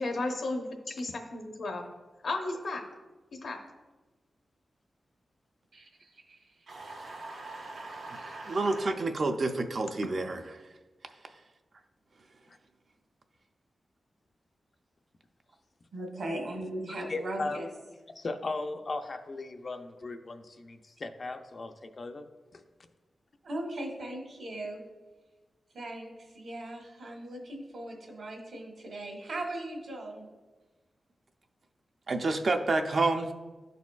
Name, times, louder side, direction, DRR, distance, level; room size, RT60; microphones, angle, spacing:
voice 1, 0.0-1.9 2.2-2.8 3.3-3.6, left 2 dB, 70° left, 3 dB, 0.9 m, -34 dB
voice 2, 5.7-6.6 8.2-8.4 15.9-17.7 23.4-24.8 25.7-30.3, right 1 dB, 70° right, 1 dB, 1.3 m, -39 dB
sound 1, 6.7-9.0, right 2 dB, 90° right, 1.1 m, -43 dB
voice 3, 8.5-10.4 32.1-33.3, right 3 dB, 50° right, 5 dB, 0.4 m, -28 dB
voice 4, 17.1-17.6 18.2-22.3 22.5-22.6, left 3 dB, 45° left, 6 dB, 0.4 m, -37 dB
12.0 x 4.1 x 2.4 m, 1.2 s
wide cardioid pair, 120°, 0 cm